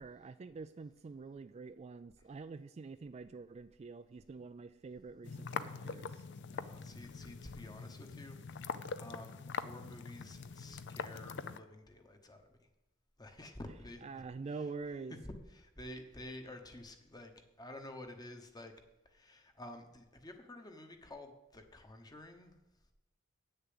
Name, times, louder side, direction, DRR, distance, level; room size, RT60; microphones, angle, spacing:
voice 1, 0.0-6.2 14.0-15.1, right 4 dB, 30° right, 11 dB, 0.3 m, -46 dB
sound 1, 5.2-11.6, left 5 dB, 60° left, 0.5 m, -43 dB
voice 2, 5.8-12.5 13.2-14.2 14.5-14.6 15.5-17.3 17.6-18.7 19.0-22.6, left 1 dB, 20° left, 6 dB, 1.0 m, -51 dB
8.8 x 6.8 x 7.7 m, 0.97 s
head